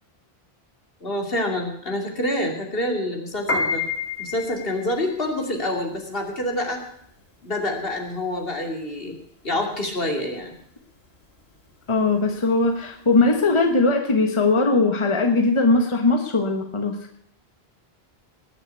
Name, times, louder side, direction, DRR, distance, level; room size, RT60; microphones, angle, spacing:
voice 1, 1.0-3.8 4.2-6.8 7.4-9.2 9.4-10.6, left 1 dB, 65° left, 2 dB, 2.8 m, -27 dB
Piano, 3.3-13.7, left 3 dB, 85° left, 2.5 m, -32 dB
voice 2, 11.9-17.0, left 3 dB, 30° left, 3 dB, 1.4 m, -20 dB
19.5 x 7.0 x 8.3 m, 0.68 s
omnidirectional pair, 1.0 m